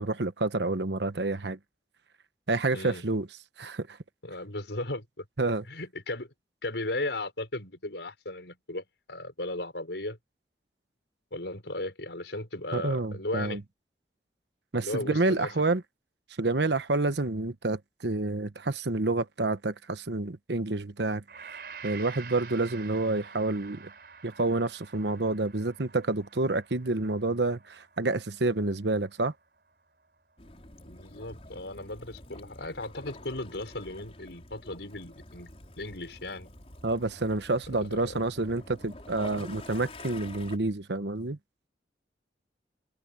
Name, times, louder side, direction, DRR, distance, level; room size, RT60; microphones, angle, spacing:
voice 1, 0.0-1.6 2.5-3.3 3.6-4.0 5.4-5.6 12.7-13.6 14.7-15.8 16.4-21.2 21.8-23.9 24.2-29.3 36.8-41.4, right 2 dB, 80° right, 1.1 m, -28 dB
voice 2, 2.7-3.0 4.2-5.2 5.7-6.3 6.6-10.2 11.3-13.6 14.8-15.5 30.9-35.5 35.8-36.5 37.8-38.2, left 2 dB, 85° left, 5.6 m, -36 dB
Gong, 21.3-29.7 30.0-30.2, right 6 dB, 60° right, 4.8 m, -48 dB
Waves surf / Splash splatter / Trickle dribble, 30.4-40.6, left 1 dB, 35° left, 5.3 m, -47 dB
head